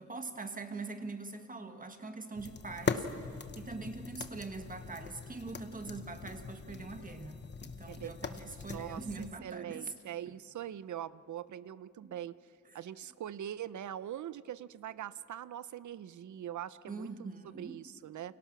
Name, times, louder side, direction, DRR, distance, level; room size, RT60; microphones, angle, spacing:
voice 1, 0.0-9.9 10.3-10.4 12.0-12.1 16.9-17.8, right 3 dB, 30° right, 6 dB, 1.6 m, -43 dB
sound 1, 2.3-9.3, left 5 dB, 40° left, 1.1 m, -41 dB
voice 2, 7.9-8.4 8.7-12.4 12.7-18.3, right 11 dB, 85° right, 16 dB, 0.7 m, -43 dB
29.5 x 28.5 x 6.1 m, 2.2 s
wide cardioid pair, 165°, 29 cm